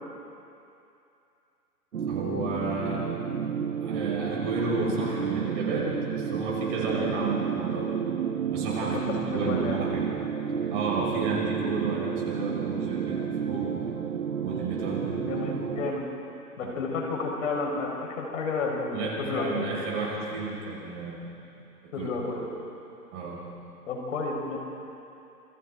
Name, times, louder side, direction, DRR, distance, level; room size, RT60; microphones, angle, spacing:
sound 1, 1.9-15.9, right 7 dB, 60° right, 1.8 m, -31 dB
voice 1, 2.1-3.1 3.8-7.9 8.5-10.1 10.7-13.7 14.4-15.3 15.7-15.8 16.6-16.7 18.9-21.3 21.9-22.1 23.1-23.6, right 3 dB, 35° right, -4 dB, 6.2 m, -32 dB
voice 2, 8.8-9.8 15.1-16.0 16.6-19.7 21.9-22.5 23.9-24.6, left 4 dB, 55° left, 0 dB, 5.4 m, -31 dB
28.0 x 25.5 x 4.0 m, 2.7 s
hypercardioid pair, 145°, 47 cm